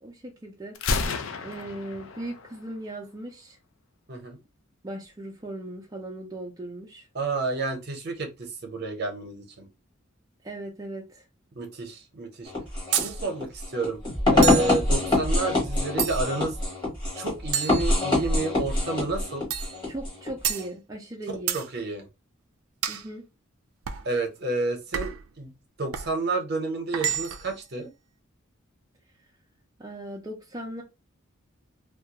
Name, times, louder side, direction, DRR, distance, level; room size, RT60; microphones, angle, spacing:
voice 1, 0.0-1.0 1.4-3.6 4.8-7.1 10.4-11.3 19.9-21.6 22.9-23.2 29.8-30.8, right 1 dB, 20° right, -1 dB, 0.4 m, -38 dB
Gunshot gunfire, 0.7-2.7, left 4 dB, 70° left, 0.4 m, -31 dB
voice 2, 7.1-9.7 11.6-12.5 12.9-14.0 14.3-16.6 17.1-19.5 21.5-22.1 24.0-25.5 25.8-27.9, right 2 dB, 50° right, 3 dB, 0.7 m, -30 dB
sound 1, 12.5-20.6, left 2 dB, 25° left, 1.0 m, -25 dB
sound 2, 12.9-13.2 14.4-14.8 16.0-16.4 17.5-18.4 19.5-19.8 20.4-20.7 21.5-21.7 22.8-23.1 23.9-24.1 24.9-25.3 25.9-26.1 26.9-27.5, right 10 dB, 85° right, 0.3 m, -30 dB
2.3 x 2.1 x 2.7 m, 0.25 s
head